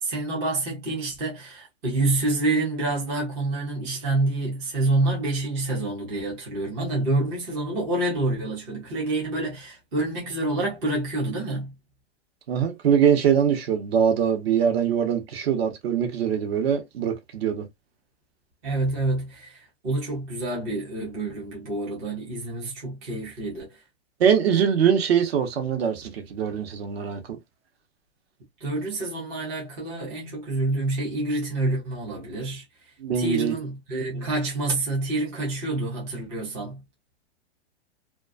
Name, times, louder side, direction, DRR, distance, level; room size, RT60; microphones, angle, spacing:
voice 1, 0.0-11.7 18.6-23.8 28.6-32.6 33.1-36.8, right 2 dB, 10° right, 0.3 m, -27 dB
voice 2, 12.5-17.7 24.2-27.4 33.0-33.5, right 8 dB, 60° right, 0.9 m, -23 dB
2.3 x 2.3 x 2.4 m
hypercardioid pair, 155°, 34 cm